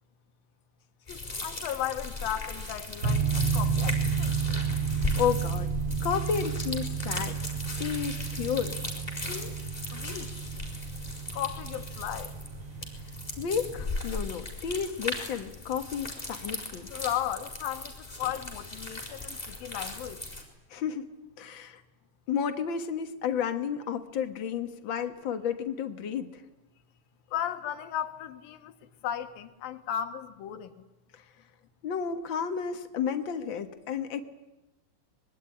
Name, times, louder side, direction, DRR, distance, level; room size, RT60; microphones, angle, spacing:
voice 1, 1.1-4.3 9.3-9.6 9.9-10.3 11.3-12.3 16.9-20.2 27.3-28.7 29.0-30.7, left 10 dB, 75° left, 2.9 m, -35 dB
sound 1, 1.1-20.4, left 2 dB, 10° left, 4.6 m, -38 dB
sound 2, 3.0-13.8, right 6 dB, 80° right, 1.2 m, -32 dB
voice 2, 4.5-4.9 5.1-5.7 6.0-7.4 7.8-8.8 13.4-16.9 20.7-21.1 21.4-21.8 22.3-26.4 31.1-31.2 31.8-34.2, left 7 dB, 55° left, 1.3 m, -32 dB
25.0 x 22.0 x 9.9 m
omnidirectional pair, 4.3 m